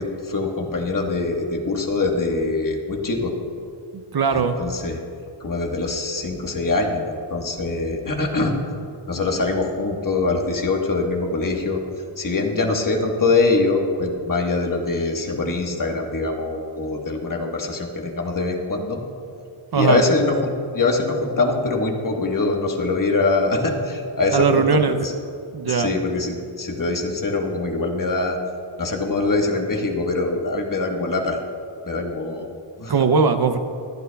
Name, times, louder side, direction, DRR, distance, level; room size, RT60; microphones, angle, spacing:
voice 1, 0.0-3.3 4.3-5.0 5.4-8.6 9.1-11.8 12.2-19.0 19.7-24.6 25.0-25.1 25.7-28.4 28.8-31.4 31.8-32.5 32.8-32.9, left 3 dB, 40° left, 1 dB, 1.3 m, -23 dB
voice 2, 3.9-4.6 19.7-20.0 24.3-25.0 25.5-26.0 32.9-33.6, right 5 dB, 50° right, 8 dB, 0.6 m, -19 dB
26.5 x 9.3 x 2.3 m, 2.5 s
wide cardioid pair, 130°, 50 cm